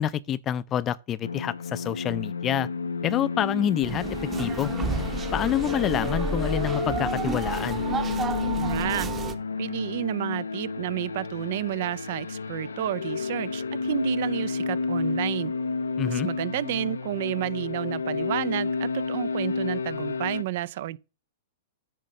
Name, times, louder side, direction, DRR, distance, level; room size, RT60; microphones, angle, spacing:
voice 1, 0.0-2.7 3.0-4.0 4.4-4.7 5.3-7.8 16.0-16.3, left 10 dB, 30° left, 0.4 m, -27 dB
sound 1, 1.2-20.4, left 4 dB, 90° left, 0.6 m, -31 dB
sound 2, 3.8-9.3, right 4 dB, 20° right, 0.9 m, -31 dB
voice 2, 8.6-9.1 9.6-15.5 16.1-21.0, right 14 dB, 60° right, 0.5 m, -31 dB
9.2 x 3.7 x 6.4 m
hypercardioid pair, 115°, 0 cm